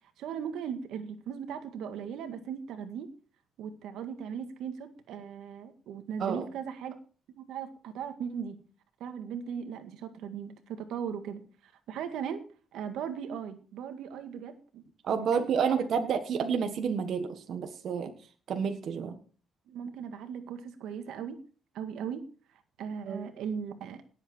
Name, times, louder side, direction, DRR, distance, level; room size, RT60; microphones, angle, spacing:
voice 1, 0.2-3.1 3.6-6.9 7.4-8.6 9.0-12.4 12.7-14.8 15.3-15.8 19.0-19.1 19.7-21.4 21.7-22.2 22.8-24.0, right 7 dB, 80° right, 8 dB, 1.8 m, -38 dB
voice 2, 15.0-18.1 18.5-19.1 23.0-23.2, right 6 dB, 55° right, 6 dB, 1.5 m, -29 dB
18.0 x 8.0 x 4.5 m, 0.39 s
cardioid pair, 130°, 0 cm